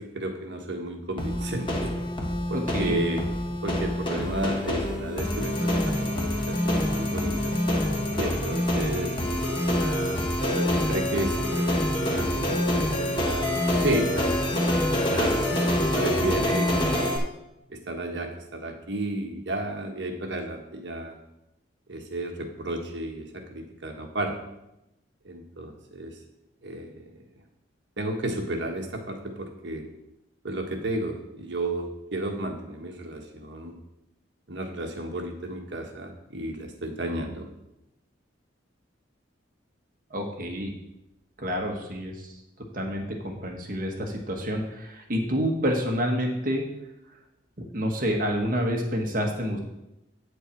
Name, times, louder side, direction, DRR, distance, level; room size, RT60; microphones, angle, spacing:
voice 1, 0.0-1.9 2.5-3.3 3.6-7.6 8.2-10.2 10.5-14.4 15.1-15.6 16.0-17.0 17.7-21.2 21.9-24.4 25.2-26.2 26.6-27.2 28.0-29.9 30.4-33.8 34.5-37.5, right 1 dB, 65° right, 3 dB, 1.4 m, -33 dB
sound 1, 1.2-17.2, left 1 dB, 25° left, 1.1 m, -26 dB
voice 2, 2.5-3.0 40.1-40.7 41.4-42.3 42.7-46.6 47.7-49.6, equal, 45° right, 2 dB, 1.3 m, -28 dB
8.6 x 6.7 x 4.5 m, 0.88 s
head